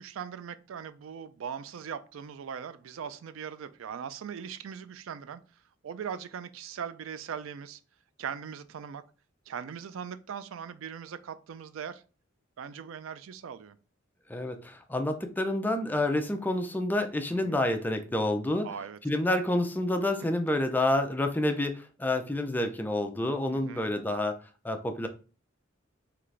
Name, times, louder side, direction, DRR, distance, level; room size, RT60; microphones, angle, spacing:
voice 1, 0.0-5.4 5.8-7.8 8.2-9.0 9.5-12.0 12.6-13.8 17.3-17.6 18.6-19.0 23.5-23.9, right 7 dB, 90° right, 13 dB, 0.4 m, -40 dB
voice 2, 14.3-18.7 19.0-24.4 24.6-25.1, left 1 dB, 10° left, 6 dB, 0.4 m, -28 dB
3.8 x 3.3 x 3.2 m, 0.36 s
head